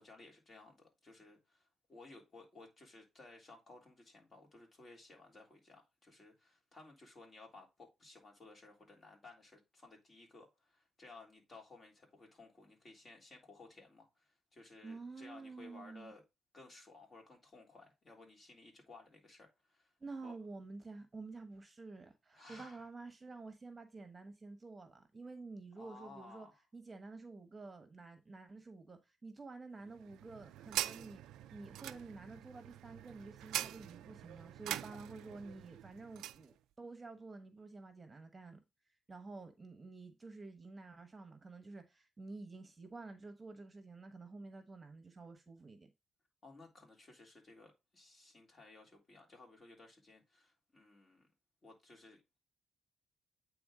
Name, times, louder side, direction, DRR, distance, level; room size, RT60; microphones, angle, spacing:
voice 1, 0.0-16.2 16.5-19.9 20.2-20.4 22.3-22.9 25.8-26.6 34.8-35.0 46.4-51.3 51.6-52.2, left 3 dB, 35° left, 3.2 m, -58 dB
voice 2, 14.8-16.1 20.0-26.5 26.7-31.2 31.5-38.6 39.1-45.9, right 3 dB, 25° right, 1.1 m, -50 dB
sound 1, 29.9-36.5, right 13 dB, 90° right, 0.3 m, -44 dB
8.7 x 3.5 x 3.6 m
cardioid pair, 90°, 0 cm